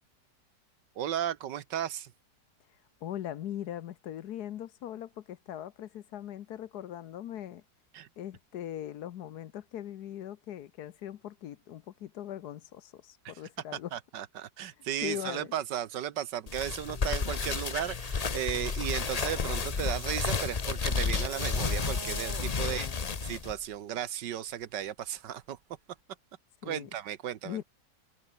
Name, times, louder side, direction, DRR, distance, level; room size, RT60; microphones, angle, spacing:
voice 1, 1.0-2.1 7.9-8.1 13.9-22.9 23.2-25.6 26.6-27.6, right 10 dB, 75° right, 1.6 m, -35 dB
voice 2, 3.0-7.6 8.2-13.9 15.0-15.5 22.6-23.2 26.6-26.9 27.4-27.6, left 11 dB, 65° left, 1.3 m, -40 dB
sound 1, 16.5-23.5, left 5 dB, 30° left, 0.7 m, -31 dB
sound 2, 20.3-25.4, right 6 dB, 40° right, 0.7 m, -47 dB
omnidirectional pair, 1.9 m